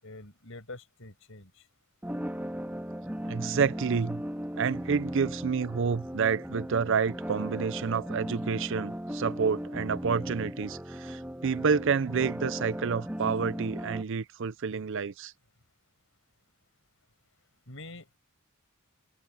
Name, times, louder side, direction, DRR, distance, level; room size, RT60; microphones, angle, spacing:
voice 1, 0.0-1.7 17.7-18.2, left 2 dB, 65° left, 5.8 m, -46 dB
sound 1, 2.0-14.0, equal, 10° right, 2.8 m, -37 dB
voice 2, 3.3-4.2 4.6-15.3, right 5 dB, 60° right, 0.5 m, -29 dB
head